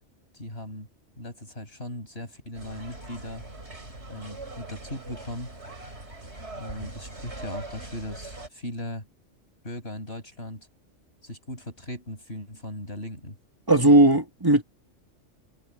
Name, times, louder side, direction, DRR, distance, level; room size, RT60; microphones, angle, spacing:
voice 1, 0.3-0.9 1.2-3.4 4.1-5.5 6.5-9.1 9.6-10.7 11.2-13.4, left 1 dB, 50° left, 6.8 m, -38 dB
sound 1, 2.5-8.5, right 2 dB, 55° right, 6.1 m, -41 dB
voice 2, 13.7-14.6, right 1 dB, 15° right, 2.2 m, -17 dB
omnidirectional pair, 1.3 m